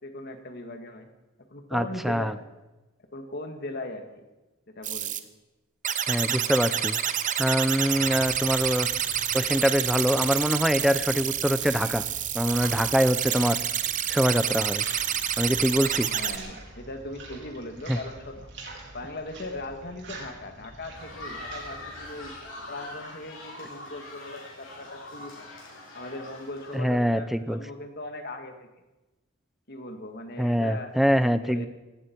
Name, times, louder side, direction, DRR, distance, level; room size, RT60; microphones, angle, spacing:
voice 1, 0.0-1.1 1.5-2.4 3.1-4.2 4.7-5.1 16.1-18.5 18.9-22.4 22.7-25.5 25.9-28.7 29.7-31.0 31.4-31.7, left 2 dB, 50° left, 6 dB, 1.9 m, -39 dB
voice 2, 1.7-2.3 6.1-7.0 7.4-8.9 9.3-12.0 12.3-13.6 14.1-14.8 15.4-16.1 17.9-18.0 26.7-27.6 30.4-31.7, equal, ahead, 12 dB, 0.5 m, -24 dB
sound 1, 4.8-5.2 5.8-16.4, right 10 dB, 40° right, 0.8 m, -28 dB
sound 2, 7.3-23.3, right 2 dB, 60° right, 3.9 m, -46 dB
sound 3, 20.9-26.8, left 1 dB, 75° left, 6.9 m, -42 dB
18.0 x 16.5 x 4.6 m, 1.1 s
head